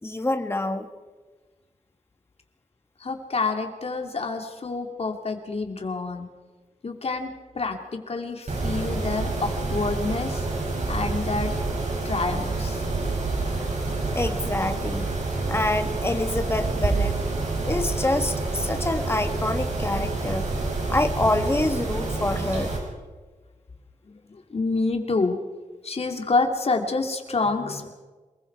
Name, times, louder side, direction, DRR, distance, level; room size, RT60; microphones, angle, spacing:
voice 1, 0.0-0.9 14.1-15.1 15.5-17.2 17.6-20.5 20.9-22.7, left 2 dB, 20° left, 7 dB, 1.6 m, -26 dB
voice 2, 3.0-6.3 6.8-10.4 10.9-11.5 12.0-12.8 24.0-25.4 25.8-27.9, left 3 dB, 50° left, 4 dB, 2.8 m, -28 dB
Mechanisms, 8.5-22.8, right 3 dB, 65° right, 6.5 m, -28 dB
28.0 x 21.0 x 4.7 m, 1.3 s
wide cardioid pair, 115°, 13 cm